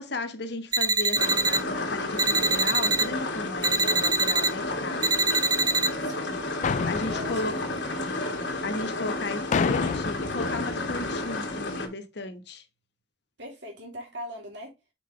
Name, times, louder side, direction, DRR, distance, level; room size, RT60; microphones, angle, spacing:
voice 1, 0.0-5.1 6.8-7.6 8.6-12.6, left 2 dB, 65° left, 1.3 m, -34 dB
sound 1, 0.7-1.6 2.2-3.0 3.6-4.5 5.0-5.9, right 3 dB, 20° right, 0.5 m, -24 dB
sound 2, 1.1-11.9, left 2 dB, 85° left, 2.2 m, -31 dB
voice 2, 5.3-6.6 7.0-7.7 8.0-8.5 13.4-14.8, equal, 80° right, 3.1 m, -42 dB
Foley Impact Metal Long Mono, 6.6-8.6 9.5-11.4, left 5 dB, 40° left, 0.3 m, -30 dB
5.9 x 5.8 x 3.3 m
head